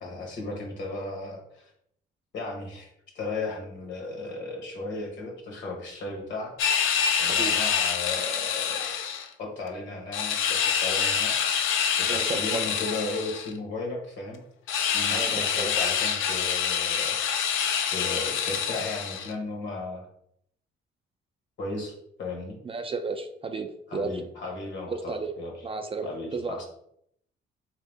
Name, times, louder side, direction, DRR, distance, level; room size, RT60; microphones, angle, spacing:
voice 1, 0.0-1.7 2.3-6.5 7.2-9.0 9.4-14.4 14.9-17.2 17.9-20.1 21.6-21.9 22.2-22.6 23.9-25.5 26.0-26.6, left 3 dB, 65° left, 0 dB, 1.3 m, -35 dB
sound 1, 6.6-9.3 10.1-13.5 14.7-19.3, left 7 dB, 85° left, 0.5 m, -26 dB
voice 2, 12.1-12.7 15.1-15.7 22.6-24.2 24.9-25.3 25.6-26.6, right 4 dB, 30° right, 7 dB, 0.4 m, -33 dB
3.5 x 2.9 x 3.4 m, 0.71 s
cardioid pair, 90°, 20 cm